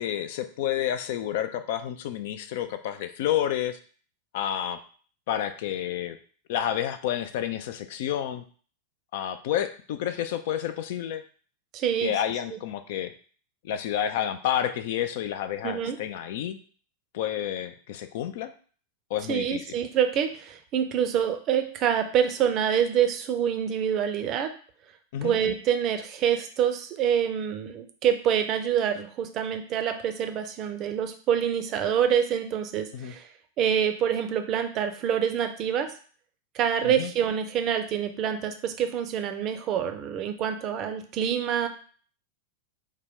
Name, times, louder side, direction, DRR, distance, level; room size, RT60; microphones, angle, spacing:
voice 1, 0.0-3.8 4.3-4.8 5.3-6.2 6.5-8.4 9.1-11.2 12.0-13.1 13.6-16.6 17.1-18.5 19.1-19.6 25.1-25.4 32.9-33.1 36.8-37.1, left 10 dB, 50° left, 10 dB, 0.3 m, -30 dB
voice 2, 11.7-12.1 12.5-12.6 15.6-16.0 19.3-24.5 25.2-33.3 33.6-35.9 36.5-41.7, right 8 dB, 35° right, 6 dB, 0.5 m, -26 dB
3.7 x 2.2 x 3.5 m, 0.43 s
figure-of-eight pair, 90°, 0 cm